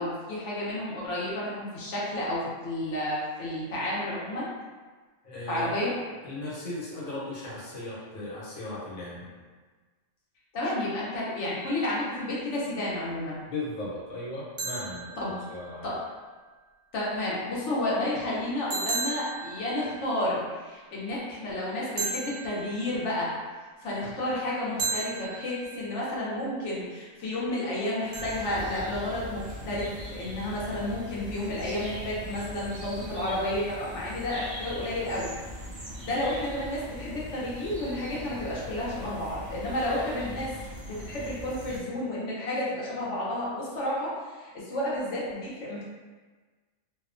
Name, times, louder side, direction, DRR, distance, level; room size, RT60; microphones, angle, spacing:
voice 1, 0.0-4.5 5.5-5.9 10.5-13.4 15.2-15.4 15.8-15.9 16.9-23.3 23.8-35.3 36.0-40.5 40.8-45.8, left 1 dB, 65° left, -6 dB, 1.0 m, -31 dB
voice 2, 5.2-5.7 6.2-9.3 13.5-15.9 39.0-39.1, left 2 dB, 85° left, -7 dB, 1.3 m, -37 dB
sound 1, 11.6-12.4 14.6-16.0 18.7-20.5 22.0-23.4 24.8-26.2 28.1-29.3, right 3 dB, 85° right, 1.1 m, -36 dB
sound 2, 28.1-41.8, equal, 60° right, 0.8 m, -41 dB
2.7 x 2.1 x 2.4 m, 1.4 s
omnidirectional pair, 1.4 m